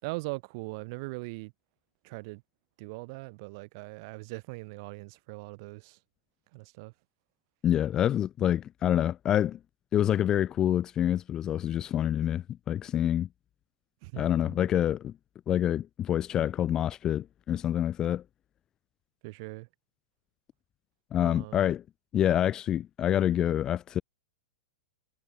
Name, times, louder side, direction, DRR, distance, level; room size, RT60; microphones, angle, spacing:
voice 1, 0.0-1.5 2.0-2.4 2.8-6.0 6.5-6.9 14.0-14.7 19.2-19.7 21.2-21.7, right 27 dB, 45° right, 4.9 m, -40 dB
voice 2, 7.6-9.6 9.9-13.3 14.2-15.1 15.5-18.2 21.1-21.8 22.1-24.0, left 11 dB, 20° left, 0.4 m, -27 dB
hypercardioid pair, 150°, 3 cm